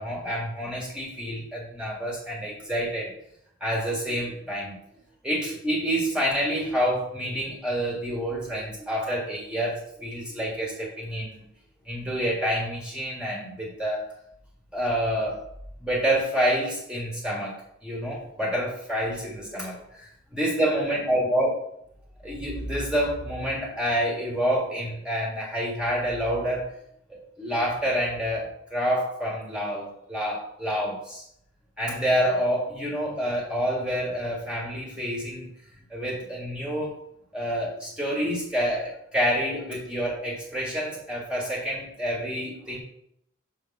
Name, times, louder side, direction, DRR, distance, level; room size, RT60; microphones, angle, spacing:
voice 1, 0.0-3.1 3.6-4.8 5.2-11.3 11.8-14.1 14.7-15.4 15.8-17.5 17.8-21.5 22.2-26.7 27.1-31.2 31.8-35.5 35.9-37.0 37.3-42.8, equal, 5° right, -3 dB, 1.5 m, -28 dB
6.5 x 5.5 x 4.0 m, 0.74 s
head